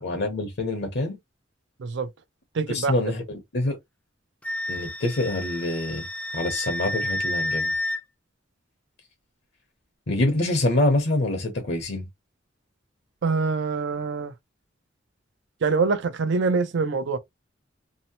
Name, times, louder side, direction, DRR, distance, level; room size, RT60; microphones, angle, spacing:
voice 1, 0.0-1.2 2.7-3.8 4.7-6.0 6.3-7.7 10.1-12.0, left 2 dB, 60° left, 0.8 m, -25 dB
voice 2, 2.5-2.9 13.2-14.3 15.6-17.2, right 4 dB, 65° right, 0.4 m, -24 dB
Wind instrument woodwind instrument, 4.4-8.0, left 1 dB, 5° left, 0.4 m, -30 dB
2.8 x 2.0 x 2.7 m
head